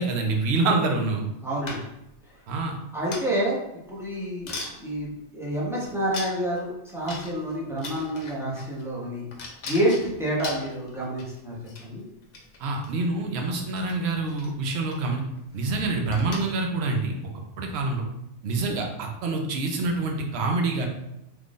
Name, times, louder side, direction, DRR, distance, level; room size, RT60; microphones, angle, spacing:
voice 1, 0.0-1.3 2.5-2.7 12.6-15.2 15.5-17.2 17.6-18.1 18.4-20.9, right 3 dB, 65° right, 2 dB, 0.9 m, -26 dB
voice 2, 1.4-1.9 2.9-3.6 3.9-9.3 9.6-12.0, right 1 dB, 5° right, -6 dB, 0.8 m, -28 dB
sound 1, 1.7-2.1 3.1-3.5 4.0-4.1 4.5-4.8 5.5-5.6 6.1-6.6 7.1-7.5 7.8-8.8 9.3-11.4 11.7-11.9 12.2-12.9 13.7-13.9 14.2-14.5 14.9-15.1 15.4-15.6 16.1-16.6, left 3 dB, 50° left, 0.5 m, -38 dB
3.6 x 3.2 x 2.5 m, 0.87 s
omnidirectional pair, 1.2 m